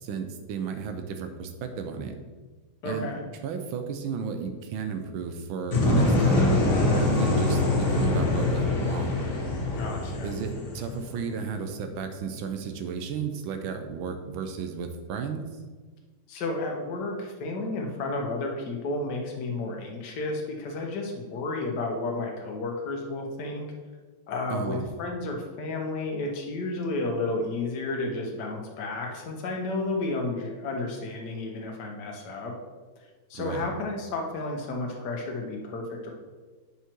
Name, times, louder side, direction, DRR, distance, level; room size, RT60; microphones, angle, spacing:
voice 1, 0.0-2.2 2.8-3.1 3.4-6.4 6.9-9.2 10.2-15.4 24.5-24.9 33.3-33.6, right 6 dB, 75° right, 7 dB, 1.6 m, -34 dB
voice 2, 2.8-3.2 9.7-10.3 16.3-23.7 24.3-32.5 33.3-36.1, left 2 dB, 55° left, 1 dB, 1.7 m, -32 dB
sound 1, 5.7-11.6, left 2 dB, 75° left, 2.4 m, -24 dB
7.5 x 5.8 x 4.5 m, 1.4 s
omnidirectional pair, 2.3 m